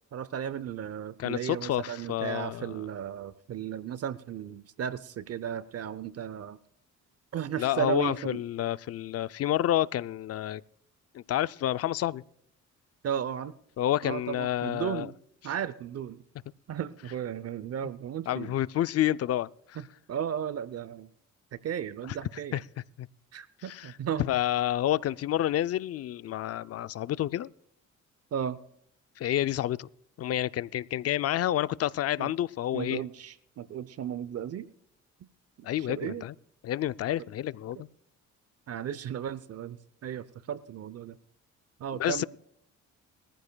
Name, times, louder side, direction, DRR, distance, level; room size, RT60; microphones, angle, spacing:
voice 1, 0.1-6.6 7.3-8.4 13.0-13.5 14.0-15.1 15.4-16.2 16.7-18.6 19.8-21.1 21.5-22.6 23.3-24.2 28.3-28.6 32.2-32.3 32.7-34.7 35.6-36.3 38.7-41.2 41.8-42.2, right 9 dB, 55° right, 0.6 m, -35 dB
voice 2, 1.2-2.8 7.6-10.6 11.1-12.2 13.8-15.1 18.3-19.8 22.1-22.2 22.5-22.6 23.0-23.1 23.6-23.9 24.2-27.5 29.2-29.9 30.2-33.0 35.6-36.3 36.6-37.9 42.0-42.2, left 12 dB, 55° left, 0.4 m, -29 dB
21.5 x 14.5 x 2.3 m
cardioid pair, 90°, 30 cm